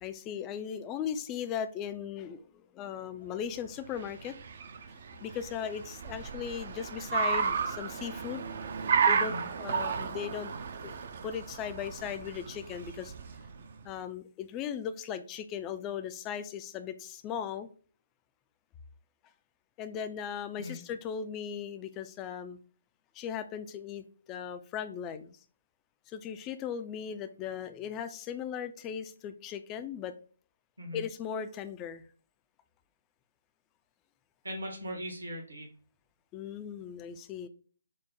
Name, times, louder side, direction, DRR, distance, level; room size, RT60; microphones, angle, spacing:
voice 1, 0.0-4.3 5.2-8.5 9.1-10.5 10.8-13.1 13.8-17.7 19.8-22.6 23.1-25.4 26.1-30.1 30.9-32.1 36.3-37.5, left 8 dB, 20° left, 11 dB, 0.3 m, -38 dB
Car, 3.6-13.8, right 6 dB, 50° right, 0.4 m, -33 dB
voice 2, 9.2-9.5 20.6-20.8 30.8-31.0 34.4-35.7, equal, 75° right, 2 dB, 1.2 m, -39 dB
4.6 x 2.1 x 4.0 m, 0.42 s
figure-of-eight pair, 140°, 0 cm